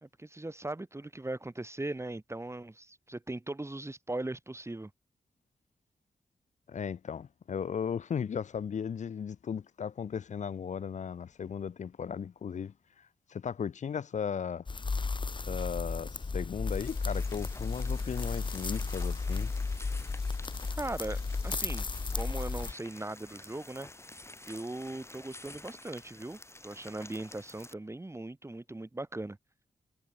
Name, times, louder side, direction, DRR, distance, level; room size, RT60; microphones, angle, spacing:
voice 1, 0.0-4.9 20.8-21.2 21.4-21.9 22.1-23.9 24.4-29.4, right 2 dB, 20° right, 2.2 m, -39 dB
voice 2, 6.7-14.6 15.5-19.5, left 7 dB, 65° left, 1.0 m, -36 dB
sound 1, 14.7-22.7, left 4 dB, 40° left, 1.2 m, -34 dB
sound 2, 16.7-27.7, left 2 dB, 20° left, 3.0 m, -50 dB
supercardioid pair, 45°, 13 cm